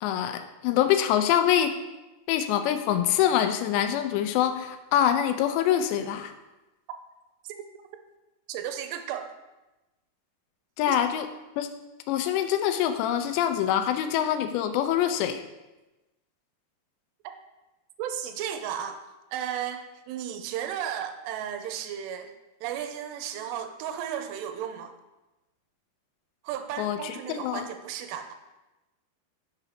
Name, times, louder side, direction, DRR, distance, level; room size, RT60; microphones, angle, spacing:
voice 1, 0.0-1.7 2.3-6.3 10.8-11.3 11.6-11.7 12.1-15.4 26.8-27.7, left 10 dB, 90° left, 8 dB, 2.9 m, -25 dB
voice 2, 8.5-9.3 10.9-11.0 18.0-19.0 19.3-22.3 22.6-24.9 26.4-28.3, right 9 dB, 80° right, 7 dB, 2.7 m, -34 dB
6.8 x 5.0 x 5.8 m, 1.1 s
omnidirectional pair, 4.9 m